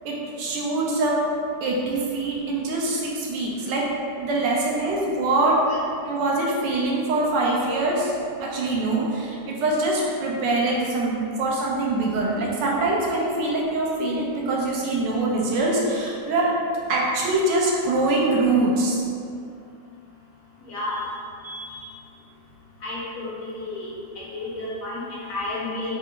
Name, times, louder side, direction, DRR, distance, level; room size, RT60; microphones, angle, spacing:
voice 1, 0.0-1.2 1.6-3.9 4.2-5.6 6.0-8.1 8.4-16.5 16.9-19.0 21.4-21.9, right 2 dB, 90° right, -3 dB, 1.3 m, -24 dB
voice 2, 20.6-21.0 22.8-23.9 24.2-25.9, left 2 dB, 70° left, -6 dB, 0.9 m, -31 dB
3.6 x 2.4 x 2.7 m, 2.4 s
omnidirectional pair, 1.9 m